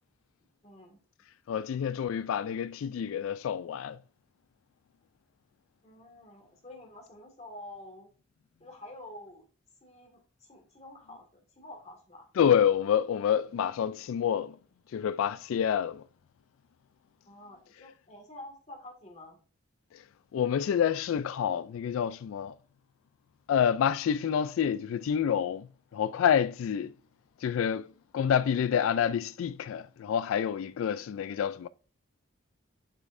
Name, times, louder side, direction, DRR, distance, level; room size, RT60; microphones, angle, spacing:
voice 1, 0.6-1.0 5.8-8.1 8.6-9.4 9.8-11.3 11.6-12.3 17.3-19.4, left 1 dB, 30° left, 1.8 m, -48 dB
voice 2, 1.5-4.0 12.4-14.6 14.9-16.0 20.3-22.5 23.5-25.7 25.9-26.9 27.4-27.9 28.1-31.7, left 8 dB, 80° left, 0.3 m, -28 dB
8.2 x 5.4 x 2.6 m
head